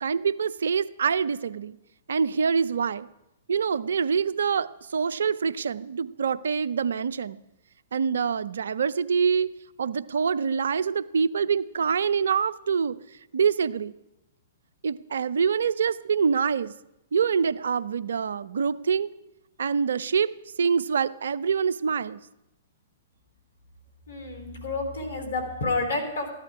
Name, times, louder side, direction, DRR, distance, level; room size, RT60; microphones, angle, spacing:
voice 1, 0.0-1.8 2.1-3.1 3.5-7.4 7.9-9.5 9.8-13.0 13.3-13.9 14.8-16.7 17.1-19.1 19.6-20.3 20.6-22.2, right 6 dB, 70° right, 17 dB, 0.4 m, -25 dB
voice 2, 24.1-26.3, left 3 dB, 70° left, 5 dB, 3.1 m, -29 dB
14.0 x 11.0 x 4.9 m, 0.90 s
figure-of-eight pair, 115°, 0 cm